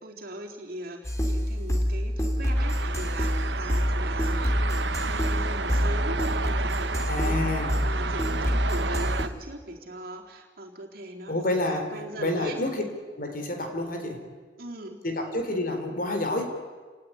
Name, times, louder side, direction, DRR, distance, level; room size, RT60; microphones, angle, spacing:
voice 1, 0.0-7.4 7.8-12.6 14.6-15.0, right 1 dB, 55° right, 0 dB, 4.0 m, -40 dB
sound 1, 1.0-9.2, equal, 15° left, 3.6 m, -27 dB
sound 2, 2.5-9.3, right 4 dB, 70° right, 1.1 m, -32 dB
voice 2, 7.1-7.8 11.3-12.8 13.2-14.2 15.0-16.4, left 2 dB, 50° left, 5 dB, 4.1 m, -29 dB
28.5 x 18.5 x 10.0 m, 1.5 s
head